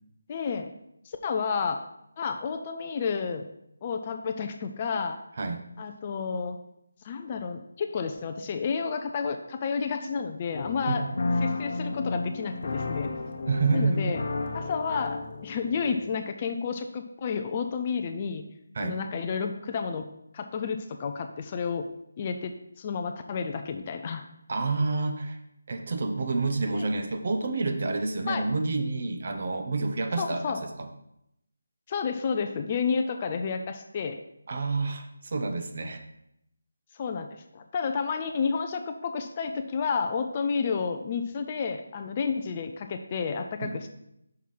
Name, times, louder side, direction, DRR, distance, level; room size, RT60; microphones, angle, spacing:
voice 1, 0.3-0.7 1.1-1.8 2.2-3.5 3.8-5.2 5.8-6.6 7.0-11.0 11.4-13.1 13.7-14.2 14.5-18.4 18.8-21.9 22.2-24.2 26.7-26.9 28.3-28.5 30.2-30.6 31.9-34.2 36.9-43.9, left 5 dB, 25° left, 6 dB, 0.4 m, -31 dB
sound 1, 10.5-16.2, left 3 dB, 50° left, 0.8 m, -33 dB
voice 2, 13.5-14.1 18.8-19.0 24.5-25.4 25.7-30.9 34.5-36.0 43.6-43.8, right 3 dB, 40° right, 6 dB, 0.7 m, -28 dB
5.8 x 4.7 x 5.4 m, 0.80 s
figure-of-eight pair, 170°, 0 cm